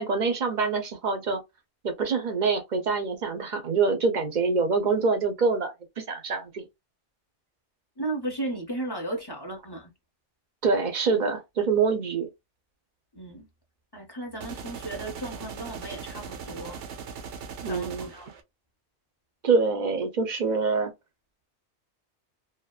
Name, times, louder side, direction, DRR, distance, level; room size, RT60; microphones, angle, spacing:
voice 1, 0.0-1.4 1.8-6.7 10.6-12.3 17.6-18.1 19.4-20.9, right 4 dB, 50° right, 0.6 m, -25 dB
voice 2, 8.0-9.9 13.1-13.5 13.9-16.8 17.7-18.3, right 2 dB, 25° left, 0.6 m, -35 dB
sound 1, 14.4-18.4, right 6 dB, 85° right, 0.9 m, -39 dB
2.8 x 2.2 x 2.2 m
omnidirectional pair, 1.2 m